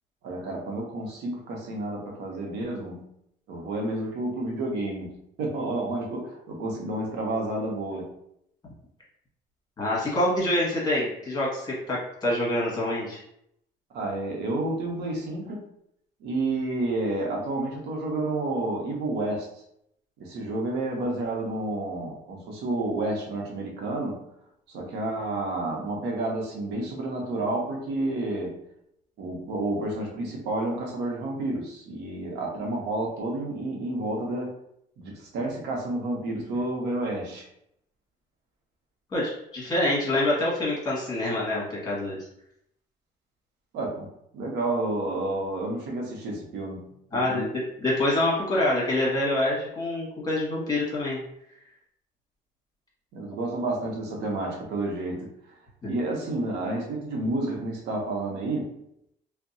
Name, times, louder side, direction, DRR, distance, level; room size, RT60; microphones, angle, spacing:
voice 1, 0.2-3.0 3.5-8.1 13.9-15.7 16.2-19.5 20.2-24.2 24.7-28.6 29.2-34.6 35.0-37.4 43.7-47.5 53.1-55.3 55.9-58.8, right 2 dB, 80° right, 0 dB, 0.8 m, -30 dB
voice 2, 9.8-13.2 39.1-42.2 47.1-51.2 55.8-55.9, left 1 dB, 25° left, -5 dB, 1.3 m, -26 dB
2.7 x 2.2 x 2.6 m, 0.75 s
cardioid pair, 110°, 17 cm